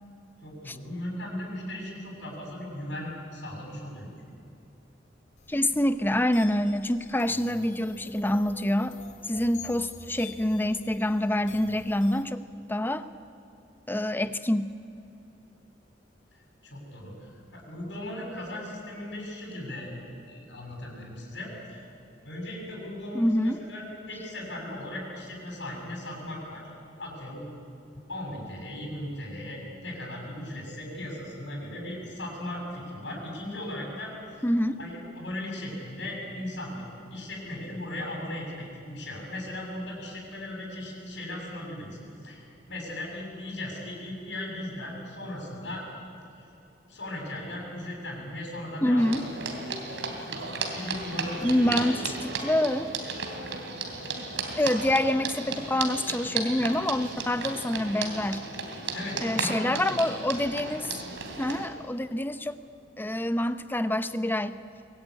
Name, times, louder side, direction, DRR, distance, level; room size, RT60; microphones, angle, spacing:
voice 1, 0.4-4.1 16.6-19.9 20.3-21.8 22.2-26.6 27.0-27.5 28.1-34.5 34.8-36.9 37.1-42.4 42.7-45.8 46.4-46.5 46.9-49.1 50.7-51.8 58.9-59.8, left 1 dB, 75° left, -1 dB, 7.2 m, -37 dB
sound 1, 5.4-12.2, left 4 dB, 45° left, 2.4 m, -48 dB
voice 2, 5.5-9.0 9.3-13.1 13.9-14.7 23.1-23.6 34.4-34.8 48.8-49.2 51.4-52.9 54.6-58.4 59.2-61.0 61.4-62.6 63.0-64.6, left 1 dB, 10° left, 11 dB, 0.8 m, -26 dB
sound 2, 49.0-61.7, right 4 dB, 90° right, 3.1 m, -34 dB
23.0 x 18.5 x 9.7 m, 2.8 s
head